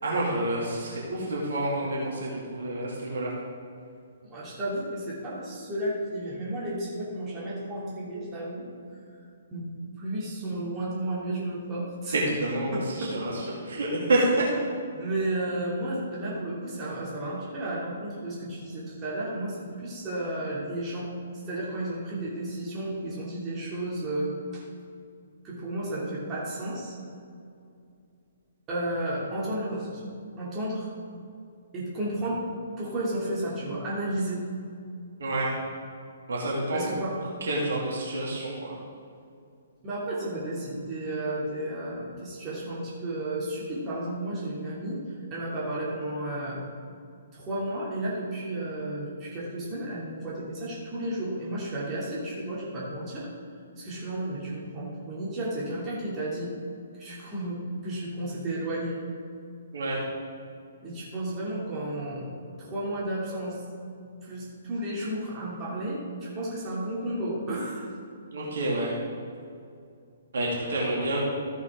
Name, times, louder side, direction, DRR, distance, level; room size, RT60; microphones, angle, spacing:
voice 1, 0.0-3.3 12.1-13.3 13.6-14.2 35.2-35.5 36.3-36.8 37.4-38.8 59.7-60.0 68.3-68.9 70.3-71.2, right 2 dB, 55° right, -5 dB, 2.4 m, -28 dB
voice 2, 4.2-8.6 9.5-9.7 10.0-12.1 12.7-13.1 14.1-14.4 14.9-21.1 21.5-24.6 25.4-26.9 28.7-30.0 30.4-30.9 31.7-32.4 32.8-34.4 36.7-37.1 39.8-45.0 45.3-46.6 47.3-53.3 53.8-56.5 57.0-59.0 60.8-63.6 64.2-67.9, right 1 dB, 20° right, -6 dB, 2.7 m, -32 dB
14.0 x 8.0 x 3.7 m, 2.4 s
figure-of-eight pair, 125°, 0 cm